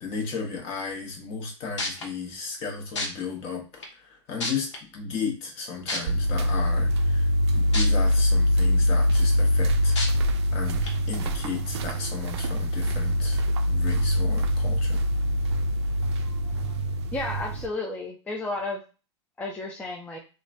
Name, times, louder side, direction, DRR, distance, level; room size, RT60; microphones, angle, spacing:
voice 1, 0.0-10.0 10.5-15.0, left 5 dB, 40° left, 1 dB, 1.0 m, -35 dB
sound 1, 1.4-1.5 1.8-2.0 3.0-3.1 3.8-3.9 4.4-4.8 5.9-6.0 7.7-7.8 8.4-8.5 10.0-10.1 10.8-10.9, left 2 dB, 75° left, 0.9 m, -28 dB
Walking office floor, 6.1-17.7, equal, 65° right, 0.4 m, -24 dB
voice 2, 17.1-18.8 19.4-20.2, left 2 dB, 10° left, 0 dB, 0.4 m, -32 dB
2.9 x 2.2 x 2.4 m, 0.34 s
hypercardioid pair, 105°, 15 cm